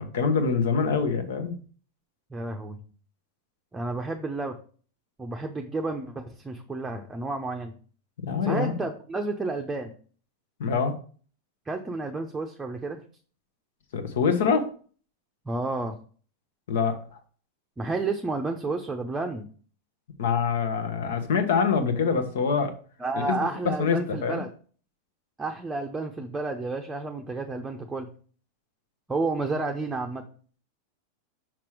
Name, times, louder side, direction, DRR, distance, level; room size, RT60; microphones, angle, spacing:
voice 1, 0.0-1.6 8.2-8.8 10.6-10.9 13.9-14.7 16.7-17.0 20.2-22.7 23.3-23.4 23.8-24.4, left 5 dB, 60° left, 8 dB, 1.2 m, -25 dB
voice 2, 2.3-2.8 3.7-4.6 5.2-7.7 8.4-9.9 11.7-13.0 15.4-16.0 17.8-19.5 23.0-24.5 25.4-28.1 29.1-30.2, right 3 dB, 10° right, 3 dB, 0.8 m, -31 dB
6.1 x 5.9 x 4.8 m, 0.42 s
figure-of-eight pair, 90°, 0 cm